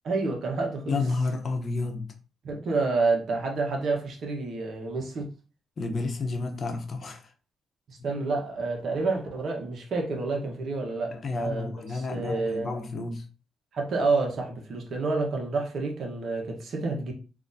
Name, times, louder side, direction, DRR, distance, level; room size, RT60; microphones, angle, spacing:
voice 1, 0.0-1.0 2.4-5.3 7.9-12.7 13.7-17.1, right 3 dB, 60° right, 1.2 m, -29 dB
voice 2, 0.9-2.1 5.8-7.3 11.1-13.3, left 3 dB, 45° left, 0.8 m, -31 dB
3.8 x 2.7 x 2.7 m
cardioid pair, 95°, 0 cm